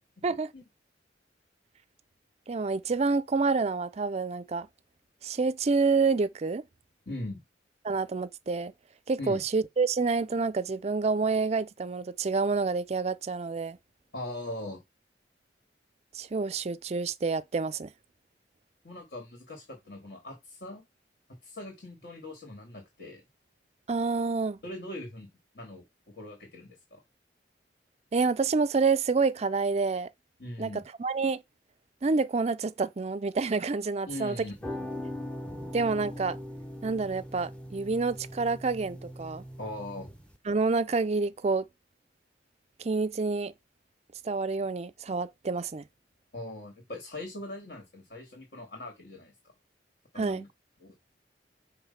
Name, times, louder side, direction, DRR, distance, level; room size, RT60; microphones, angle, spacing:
voice 1, 2.5-4.7 5.2-6.6 7.8-8.7 9.1-13.8 16.1-17.9 23.9-24.6 28.1-30.1 30.6-30.7 31.0-31.4 32.0-34.4 35.7-36.4 36.8-39.4 40.5-41.7 42.8-43.5 44.2-45.8 50.2-50.4, right 4 dB, 35° right, 0.4 m, -28 dB
voice 2, 7.0-7.4 9.2-9.4 14.1-14.8 18.8-20.8 21.4-23.2 24.6-25.3 25.5-27.0 30.4-30.8 34.1-34.7 39.6-40.1 46.3-49.3 50.1-50.5 50.8-51.0, left 1 dB, 60° left, 3.3 m, -40 dB
sound 1, 34.4-40.4, left 1 dB, 5° left, 0.8 m, -40 dB
6.9 x 3.5 x 5.7 m
head